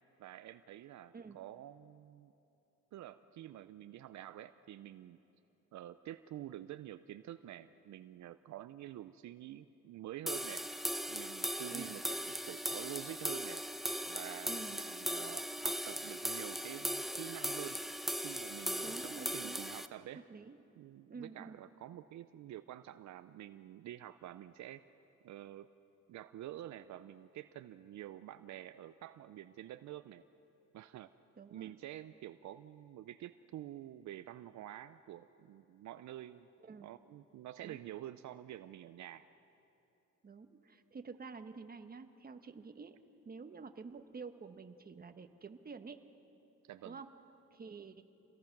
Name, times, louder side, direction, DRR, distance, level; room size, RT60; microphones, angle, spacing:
voice 1, 0.2-2.3 2.9-5.2 5.7-10.7 11.1-13.6 14.1-17.8 18.2-20.2 20.8-24.8 25.2-25.7 26.1-30.2 30.7-31.1 31.5-36.5 36.8-39.3 46.6-47.0, right 13 dB, 70° right, 11 dB, 0.6 m, -48 dB
sound 1, 10.3-19.9, equal, ahead, 0.8 m, -38 dB
voice 2, 14.5-14.8 18.8-19.6 20.1-20.6 21.1-21.6 31.4-31.7 36.6-36.9 37.6-37.8 40.2-43.0 43.2-46.0 46.8-47.1 47.5-48.0, right 4 dB, 30° right, 7 dB, 1.3 m, -49 dB
28.0 x 19.0 x 6.0 m, 2.8 s
cardioid pair, 90°, 30 cm